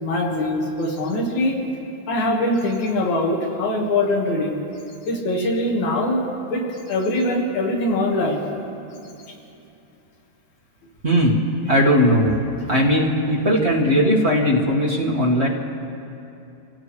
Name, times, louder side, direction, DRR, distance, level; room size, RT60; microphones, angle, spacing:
voice 1, 0.0-1.6 2.1-4.6 5.1-6.2 6.5-6.6 6.9-8.5, left 1 dB, 80° left, -1 dB, 3.2 m, -22 dB
voice 2, 11.0-11.4 11.6-12.3 12.7-15.5, equal, 30° right, -4 dB, 1.3 m, -18 dB
26.5 x 17.0 x 3.2 m, 2.8 s
omnidirectional pair, 3.3 m